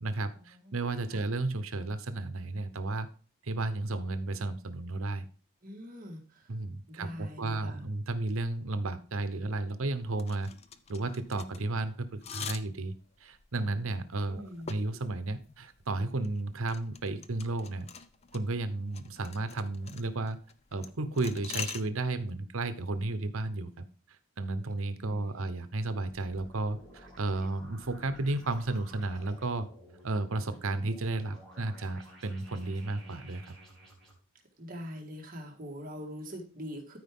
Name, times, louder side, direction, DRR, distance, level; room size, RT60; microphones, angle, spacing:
voice 1, 0.0-3.1 3.4-5.3 6.5-10.5 10.9-12.9 13.2-17.9 18.3-20.4 20.7-29.7 30.0-33.6, right 2 dB, 85° right, 11 dB, 0.9 m, -33 dB
voice 2, 5.6-6.5 6.9-7.8 14.3-14.8 25.0-25.5 34.6-37.0, equal, 40° right, 1 dB, 1.8 m, -43 dB
sound 1, 10.1-21.8, left 6 dB, 30° left, 0.5 m, -45 dB
sound 2, 26.0-34.1, right 1 dB, ahead, 3.2 m, -53 dB
13.5 x 4.8 x 3.6 m, 0.40 s
head